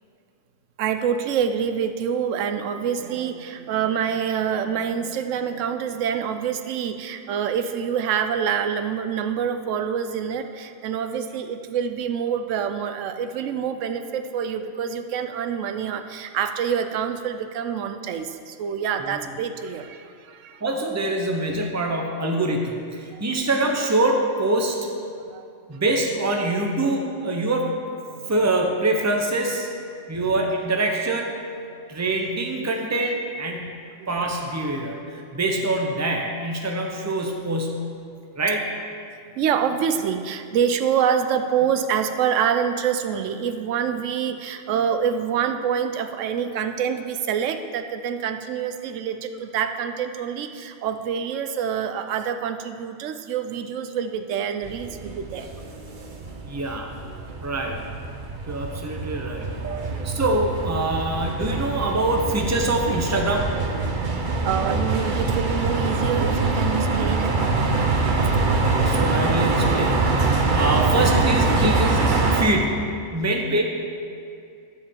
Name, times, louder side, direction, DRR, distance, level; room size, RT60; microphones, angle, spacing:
voice 1, 0.8-20.6 23.0-23.2 25.3-25.5 28.1-28.2 33.5-33.7 34.0-34.1 39.4-55.5 59.7-60.0 64.4-67.4, right 8 dB, 80° right, 8 dB, 1.0 m, -26 dB
voice 2, 20.6-24.8 25.7-27.9 28.3-29.7 30.1-31.3 31.9-33.6 34.1-37.9 38.4-38.7 56.4-56.9 57.4-57.8 58.5-59.5 60.0-63.5 68.4-73.6, right 2 dB, 15° right, 1 dB, 0.8 m, -24 dB
sound 1, 54.6-72.4, right 3 dB, 45° right, 0.9 m, -24 dB
10.5 x 5.0 x 7.2 m, 2.5 s
omnidirectional pair, 1.3 m